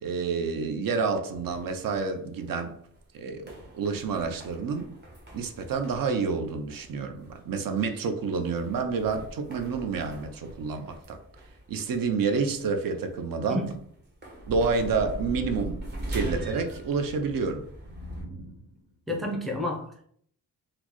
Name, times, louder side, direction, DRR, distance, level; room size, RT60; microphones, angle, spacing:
voice 1, 0.0-2.8 3.1-4.9 5.3-11.2 11.7-13.6 14.5-17.6, right 5 dB, 65° right, 0.5 m, -29 dB
sound 1, 1.3-18.2, right 1 dB, 30° right, 0.8 m, -46 dB
sound 2, 14.4-16.9 17.8-18.8, right 1 dB, 90° right, 1.1 m, -36 dB
voice 2, 19.1-20.1, left 1 dB, ahead, 0.4 m, -30 dB
4.1 x 2.0 x 2.9 m
wide cardioid pair, 160°, 36 cm